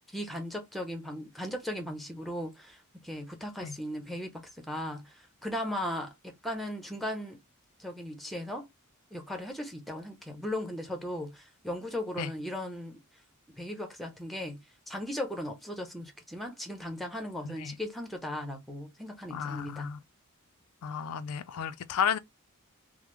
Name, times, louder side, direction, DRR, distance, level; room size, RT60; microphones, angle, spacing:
voice 1, 0.1-7.4 7.8-8.7 9.1-13.0 13.6-14.6 14.9-19.9, left 1 dB, ahead, 0.7 m, -37 dB
voice 2, 17.4-17.8 19.3-20.0 20.8-22.2, left 7 dB, 90° left, 0.4 m, -33 dB
3.5 x 2.0 x 3.0 m
head